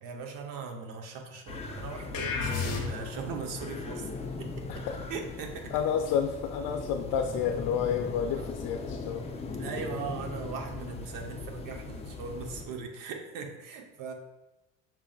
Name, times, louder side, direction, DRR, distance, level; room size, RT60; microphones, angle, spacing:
voice 1, 0.0-4.1 4.4-4.5 5.1-5.7 8.4-8.5 9.6-14.1, right 5 dB, 65° right, 4 dB, 0.8 m, -39 dB
sound 1, 1.5-12.7, left 4 dB, 20° left, 0.4 m, -39 dB
sound 2, 2.1-3.3, left 4 dB, 45° left, 1.0 m, -31 dB
voice 2, 5.7-9.2, left 8 dB, 75° left, 4 dB, 0.5 m, -30 dB
6.2 x 3.7 x 2.3 m, 0.96 s
cardioid pair, 120°, 35 cm